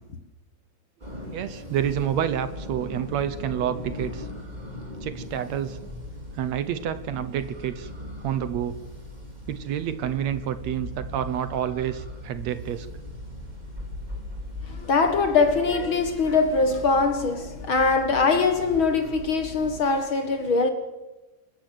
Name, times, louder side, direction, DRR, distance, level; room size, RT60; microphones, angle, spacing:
sound 1, 1.0-19.8, left 1 dB, 15° right, 3.6 m, -39 dB
voice 1, 1.3-4.3 5.0-5.8 6.3-7.9 8.2-8.8 9.5-12.9, right 10 dB, 70° right, 2.0 m, -28 dB
voice 2, 14.7-20.7, left 4 dB, 50° left, 2.0 m, -22 dB
26.0 x 14.5 x 9.1 m
omnidirectional pair, 3.5 m